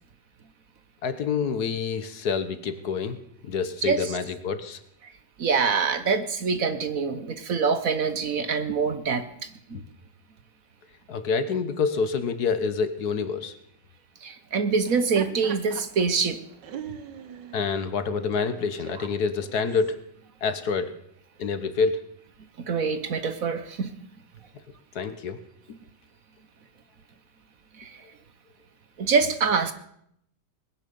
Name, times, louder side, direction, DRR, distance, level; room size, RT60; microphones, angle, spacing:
voice 1, 1.0-3.2 3.4-4.8 11.1-13.5 17.5-20.0 20.4-20.9 21.4-22.0 24.9-25.4, left 5 dB, 60° left, 11 dB, 1.6 m, -27 dB
voice 2, 3.8-4.1 5.4-9.8 14.2-16.4 19.0-19.1 22.7-23.9 27.8-28.0 29.0-29.7, right 5 dB, 55° right, 11 dB, 1.2 m, -25 dB
Laughter, 14.7-19.9, right 8 dB, 75° right, 1.8 m, -42 dB
20.0 x 10.5 x 6.9 m, 0.72 s
omnidirectional pair, 1.9 m